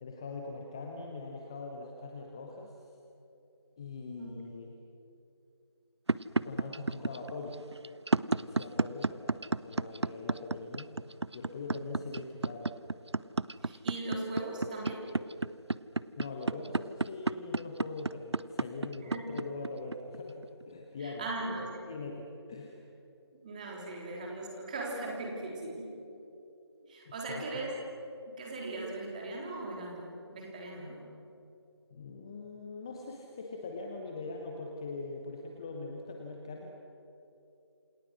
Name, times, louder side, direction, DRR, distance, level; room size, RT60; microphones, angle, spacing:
voice 1, 0.0-2.8 3.8-4.7 6.4-7.6 8.4-10.9 11.3-12.7 16.2-21.3 21.6-22.8 26.7-27.5 31.9-36.7, left 3 dB, 10° left, 2 dB, 0.9 m, -42 dB
sound 1, 6.1-20.6, right 3 dB, 80° right, 0.8 m, -31 dB
voice 2, 13.6-15.0 19.1-19.3 21.0-21.8 23.3-25.9 26.9-27.8 28.3-31.0, right 2 dB, 15° right, -1 dB, 3.7 m, -39 dB
28.0 x 27.5 x 6.3 m, 2.9 s
figure-of-eight pair, 165°, 14 cm